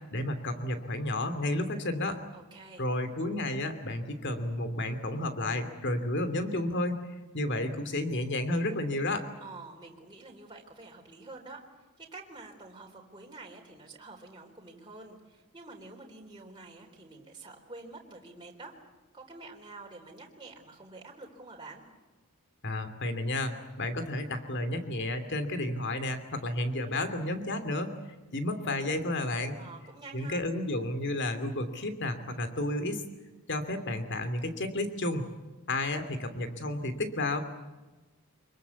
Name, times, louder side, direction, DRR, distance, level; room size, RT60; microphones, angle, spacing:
voice 1, 0.1-2.2 2.8-7.1 7.3-9.2 22.6-23.5 23.8-27.9 28.3-29.6 30.1-33.0 33.5-35.2 35.7-37.4, left 1 dB, 50° left, 9 dB, 2.8 m, -31 dB
voice 2, 2.3-2.8 9.4-11.6 12.0-18.8 19.1-21.8 29.6-30.4, right 3 dB, 20° right, -1 dB, 3.7 m, -48 dB
25.5 x 22.5 x 8.4 m, 1.2 s
head